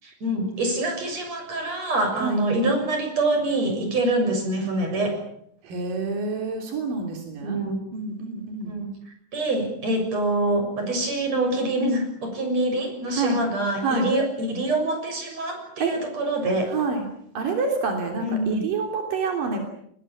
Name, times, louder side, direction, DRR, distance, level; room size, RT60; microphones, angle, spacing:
voice 1, 0.0-5.2 7.4-7.8 8.7-8.9 9.3-16.7 18.3-18.6, right 1 dB, 50° right, 4 dB, 8.1 m, -25 dB
voice 2, 5.6-7.6 7.9-8.7 13.1-13.4 13.8-14.1 15.8-15.9 16.7-17.1 17.3-19.6, right 4 dB, 90° right, 3 dB, 4.9 m, -27 dB
25.0 x 21.0 x 8.8 m, 0.70 s
omnidirectional pair, 3.7 m